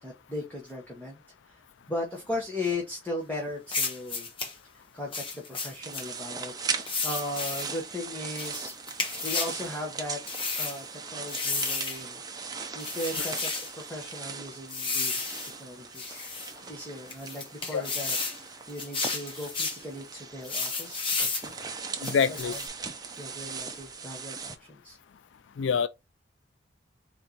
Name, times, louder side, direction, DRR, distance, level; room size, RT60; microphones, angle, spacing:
voice 1, 0.0-1.6 1.9-4.3 4.7-8.7 9.2-10.2 10.6-10.8 11.1-13.5 13.8-16.2 16.7-21.5 22.1-22.6 23.2-25.0, left 1 dB, 10° left, 1.2 m, -37 dB
sound 1, 3.7-4.5 5.1-6.1 6.9-7.7 8.4-9.6 10.3-10.8 11.3-12.0 12.8-13.7 14.7-15.5 15.9-16.5 17.1-18.4 18.8-19.8 20.4-21.5 22.0-22.7, left 4 dB, 30° left, 1.1 m, -32 dB
sound 2, 5.8-24.6, right 5 dB, 20° right, 0.6 m, -39 dB
voice 2, 22.0-22.5 25.6-25.9, left 6 dB, 85° left, 0.4 m, -25 dB
4.4 x 3.0 x 3.9 m
head